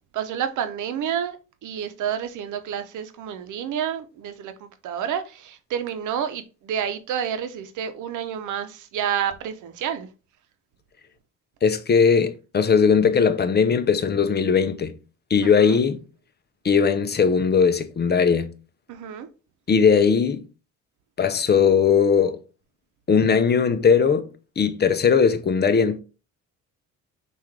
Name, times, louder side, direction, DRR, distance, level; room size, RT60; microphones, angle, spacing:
voice 1, 0.1-1.4 1.6-10.1 15.4-15.8 18.9-19.3, right 8 dB, 80° right, 0.7 m, -29 dB
voice 2, 11.6-14.9 15.3-16.0 16.6-18.5 19.7-20.4 21.2-22.4 23.1-24.3 24.6-26.0, left 6 dB, 35° left, 0.6 m, -19 dB
5.7 x 2.5 x 3.2 m
cardioid pair, 90°, 30 cm